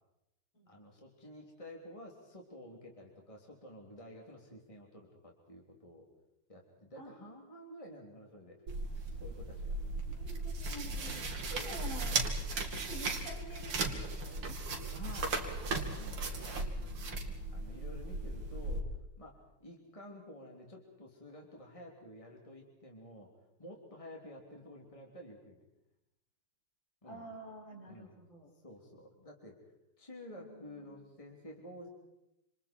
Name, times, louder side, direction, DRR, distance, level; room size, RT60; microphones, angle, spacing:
voice 1, 0.7-6.0 6.5-8.6 9.1-9.7 10.9-11.8 14.9-15.6 15.9-17.1 17.5-18.8 19.2-23.3 23.6-25.6 27.0-27.2 27.8-28.1 28.6-29.6 30.0-31.9, left 1 dB, 15° left, -1 dB, 3.4 m, -51 dB
sound 1, 8.7-18.8, right 3 dB, 90° right, 3.2 m, -37 dB
voice 2, 10.1-11.2 11.5-12.2 12.9-14.5 16.9-17.4 27.0-28.5 30.3-30.9, right 1 dB, 60° left, -3 dB, 7.6 m, -49 dB
28.0 x 27.5 x 4.6 m, 0.86 s
omnidirectional pair, 2.4 m